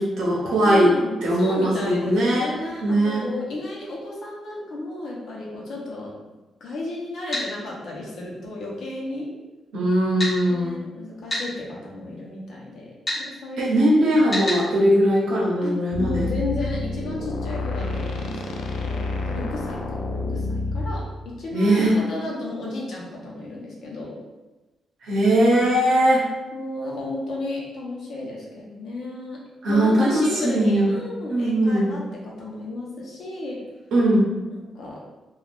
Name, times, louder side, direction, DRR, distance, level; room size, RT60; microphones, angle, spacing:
voice 1, 0.0-0.9 1.2-3.3 9.7-10.7 13.6-16.4 21.5-22.0 25.0-26.2 29.6-31.0 31.3-32.0 33.9-34.3, right 1 dB, 85° right, -4 dB, 0.7 m, -20 dB
voice 2, 0.6-6.1 6.6-9.3 10.5-12.9 13.2-13.7 15.6-21.1 21.4-24.2 26.5-29.4 29.7-33.6 34.5-35.0, left 2 dB, 60° left, -4 dB, 0.7 m, -33 dB
sound 1, 7.3-7.5 10.2-10.4 11.3-11.5 13.1-13.2 14.3-14.6, left 1 dB, 30° left, 1.5 m, -26 dB
sound 2, 15.9-21.0, left 3 dB, 75° left, 0.3 m, -28 dB
3.4 x 2.3 x 2.4 m, 1.1 s
wide cardioid pair, 170°, 0 cm